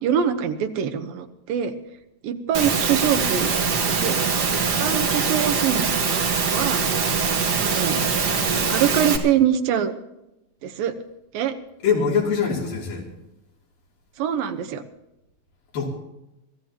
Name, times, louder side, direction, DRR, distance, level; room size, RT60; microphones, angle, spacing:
voice 1, 0.0-1.7 2.2-3.5 3.8-5.9 6.5-6.8 7.6-8.0 8.7-9.9 10.6-10.9 11.3-11.5 14.2-14.8, right 9 dB, 90° right, 6 dB, 2.9 m, -24 dB
Engine / Mechanisms, 2.5-9.2, right 5 dB, 55° right, 1.1 m, -22 dB
voice 2, 7.9-8.6 11.8-13.1 15.7-15.9, left 6 dB, 80° left, -2 dB, 4.9 m, -24 dB
24.5 x 15.0 x 3.0 m, 0.90 s
omnidirectional pair, 3.9 m